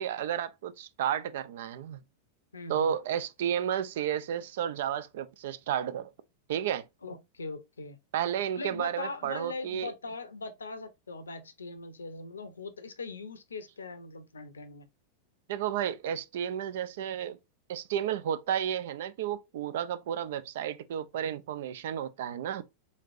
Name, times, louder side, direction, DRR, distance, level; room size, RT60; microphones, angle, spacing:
voice 1, 0.0-2.0 2.7-6.1 6.5-6.9 8.1-9.9 15.5-17.4 17.7-22.6, right 9 dB, 55° right, 0.4 m, -32 dB
voice 2, 2.5-2.9 7.0-8.0 8.6-14.9, left 3 dB, 75° left, 0.6 m, -40 dB
4.0 x 3.2 x 2.5 m
figure-of-eight pair, 90°, 0 cm